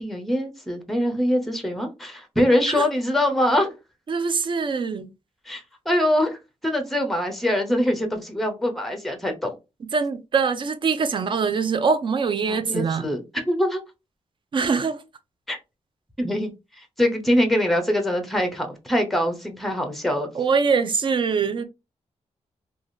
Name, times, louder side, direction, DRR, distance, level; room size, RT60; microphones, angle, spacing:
voice 1, 0.0-3.7 5.5-6.4 6.6-9.6 12.5-13.8 15.5-15.6 16.2-20.3, left 1 dB, ahead, 0.6 m, -23 dB
voice 2, 4.1-5.1 9.9-13.1 14.5-15.0 20.4-21.6, right 5 dB, 45° right, 0.4 m, -23 dB
3.4 x 2.3 x 2.5 m
wide cardioid pair, 155°, 12 cm